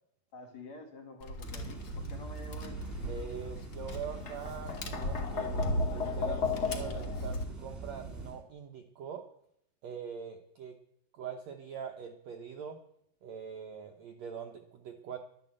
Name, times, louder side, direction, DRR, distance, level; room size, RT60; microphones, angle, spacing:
voice 1, 0.3-2.8, left 2 dB, 55° left, 4 dB, 2.6 m, -48 dB
Tap, 1.2-7.4, left 3 dB, 75° left, 0.9 m, -35 dB
sound 1, 1.4-8.4, right 3 dB, 5° right, 1.6 m, -43 dB
voice 2, 3.1-9.2 9.8-10.7 11.1-12.8 13.2-15.2, right 7 dB, 70° right, 4 dB, 1.7 m, -43 dB
12.0 x 11.5 x 7.8 m, 0.71 s
omnidirectional pair, 4.3 m